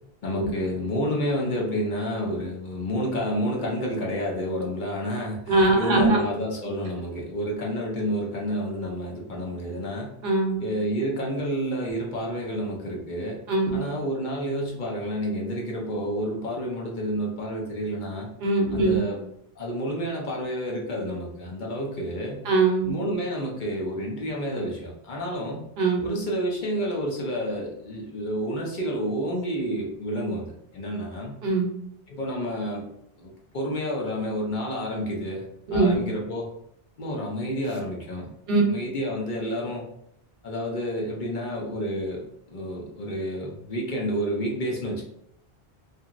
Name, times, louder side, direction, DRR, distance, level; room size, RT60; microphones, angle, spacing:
voice 1, 0.2-10.1 10.6-13.4 13.7-18.3 18.7-19.2 19.6-22.4 22.8-25.6 26.0-31.4 32.1-32.9 33.2-35.4 35.7-36.5 37.0-38.3 38.6-39.8 40.4-42.2 42.5-45.0, equal, 55° left, -2 dB, 0.7 m, -29 dB
voice 2, 5.5-6.2 10.2-10.6 13.5-13.8 18.4-19.0 22.5-22.9 25.8-26.1 31.4-31.7 35.7-36.0 38.5-38.6, right 3 dB, 75° right, 1 dB, 0.9 m, -21 dB
2.8 x 2.5 x 2.4 m, 0.74 s
omnidirectional pair, 1.0 m